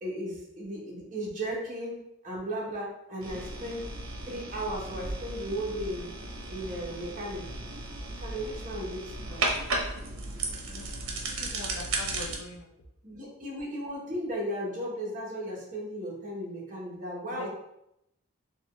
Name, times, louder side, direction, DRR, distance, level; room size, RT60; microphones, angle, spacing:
voice 1, 0.0-4.0 4.2-6.1 6.5-7.5 8.2-9.5 13.0-17.5, equal, 35° right, -4 dB, 1.0 m, -36 dB
sound 1, 3.2-12.4, right 2 dB, 80° right, 0.7 m, -35 dB
voice 2, 11.1-12.7 17.3-17.5, left 2 dB, 80° left, 2 dB, 0.6 m, -43 dB
4.3 x 2.3 x 3.1 m, 0.80 s
head